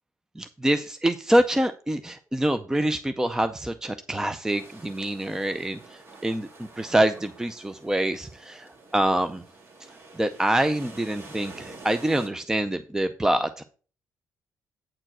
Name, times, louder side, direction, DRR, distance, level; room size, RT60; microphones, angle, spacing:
voice 1, 0.4-5.8 6.2-6.5 6.8-9.4 10.2-13.6, right 1 dB, 10° right, 10 dB, 0.5 m, -25 dB
sound 1, 4.5-12.3, right 2 dB, 45° right, 2.3 m, -47 dB
8.9 x 4.5 x 6.0 m, 0.41 s
cardioid pair, 100°, 6 cm